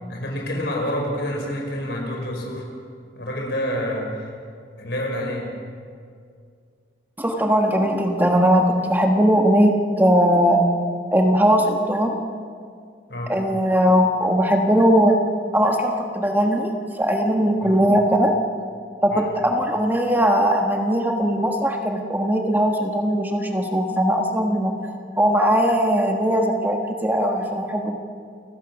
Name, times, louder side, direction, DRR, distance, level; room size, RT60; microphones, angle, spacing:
voice 1, 0.1-2.7 3.2-4.3 4.8-5.5 13.1-13.3 17.6-17.8 19.1-19.4, equal, 65° left, 0 dB, 5.5 m, -28 dB
voice 2, 7.2-10.6 11.1-12.2 13.3-15.1 15.5-18.3 19.0-27.9, equal, 10° right, 2 dB, 1.4 m, -19 dB
29.5 x 16.5 x 6.1 m, 2.2 s
head